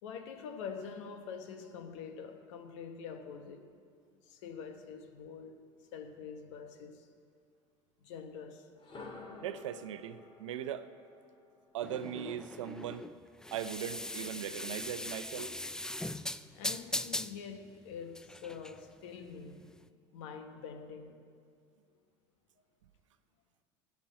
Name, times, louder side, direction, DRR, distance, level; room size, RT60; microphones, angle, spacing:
voice 1, 0.0-3.7 4.2-5.6 5.9-7.1 8.0-8.7 16.5-19.7 20.1-21.2, left 6 dB, 75° left, 1.3 m, -45 dB
sound 1, 8.7-12.7, left 3 dB, 35° left, 2.0 m, -52 dB
voice 2, 9.4-10.9 11.7-13.1 13.5-15.5, right 9 dB, 90° right, 0.7 m, -39 dB
sound 2, 11.8-19.8, left 1 dB, 5° left, 0.4 m, -40 dB
13.5 x 6.1 x 9.3 m
hypercardioid pair, 85°, 15 cm